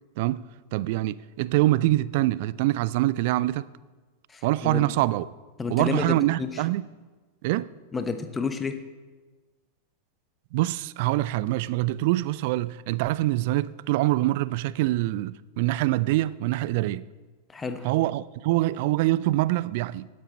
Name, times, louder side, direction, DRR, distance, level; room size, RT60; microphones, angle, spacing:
voice 1, 0.2-3.7 4.4-5.3 5.7-6.9 7.4-7.7 10.5-17.0 17.8-20.1, right 17 dB, 50° right, 0.4 m, -25 dB
voice 2, 4.3-4.8 5.6-6.5 7.9-8.8 17.5-17.9, left 4 dB, 15° left, 1.1 m, -30 dB
17.5 x 9.6 x 4.3 m
figure-of-eight pair, 90°, 0 cm